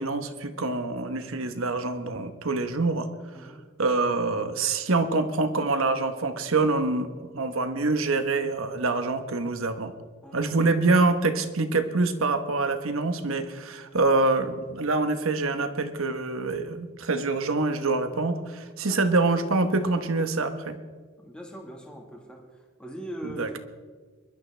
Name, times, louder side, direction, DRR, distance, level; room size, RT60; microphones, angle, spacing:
voice 1, 0.0-3.1 3.8-9.9 10.3-20.8 23.4-23.6, right 3 dB, 75° right, 8 dB, 1.1 m, -25 dB
voice 2, 3.3-3.7 10.2-10.8 18.9-19.2 21.2-23.6, equal, 5° left, 1 dB, 1.6 m, -42 dB
23.5 x 12.0 x 3.4 m, 1.5 s
head